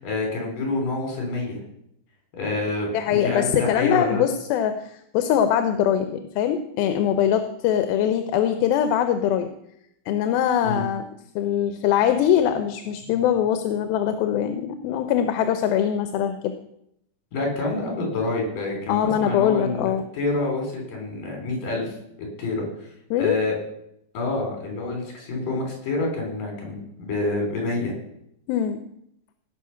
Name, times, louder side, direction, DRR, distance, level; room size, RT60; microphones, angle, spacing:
voice 1, 0.0-1.6 2.3-4.2 10.6-10.8 17.3-21.9 22.4-22.7 23.2-23.5 24.1-27.9, left 2 dB, 65° left, 1 dB, 4.9 m, -27 dB
voice 2, 2.9-9.5 10.1-11.0 11.4-16.5 18.9-20.0 23.1-23.4 28.5-28.8, left 9 dB, 85° left, 8 dB, 2.6 m, -22 dB
18.0 x 6.3 x 5.7 m, 0.77 s
omnidirectional pair, 4.2 m